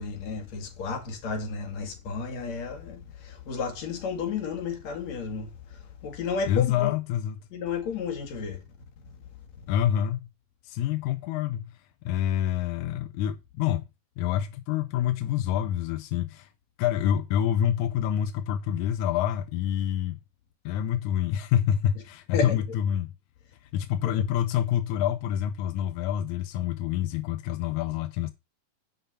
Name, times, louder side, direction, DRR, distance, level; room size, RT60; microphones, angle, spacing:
voice 1, 0.0-6.9 7.5-8.6 9.6-9.7 22.3-22.6 24.0-24.3, left 5 dB, 55° left, 2.9 m, -32 dB
voice 2, 6.5-7.4 9.7-10.3 10.6-11.7 12.1-13.9 14.2-16.5 16.8-20.2 20.7-23.1 23.7-28.3, left 10 dB, 80° left, 1.7 m, -27 dB
6.7 x 5.7 x 5.7 m
omnidirectional pair, 4.1 m